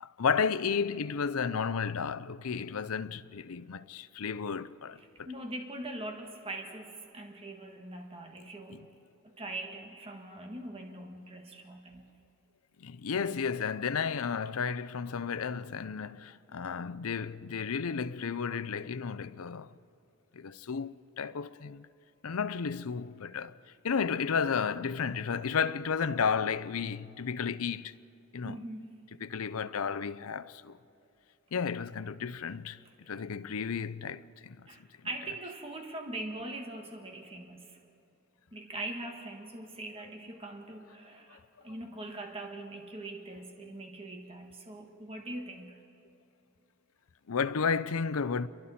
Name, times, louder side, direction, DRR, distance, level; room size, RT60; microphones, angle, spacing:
voice 1, 0.0-5.3 8.7-8.9 12.8-19.7 20.3-21.9 22.2-23.6 23.8-27.9 28.3-28.6 29.2-30.8 31.5-32.8 33.1-34.7 47.3-48.5, left 6 dB, 65° left, 0.6 m, -33 dB
voice 2, 5.0-8.9 9.2-12.0 28.4-29.1 32.8-32.9 34.7-37.8 38.5-45.8, right 2 dB, 25° right, 1.5 m, -42 dB
29.0 x 23.0 x 4.3 m
head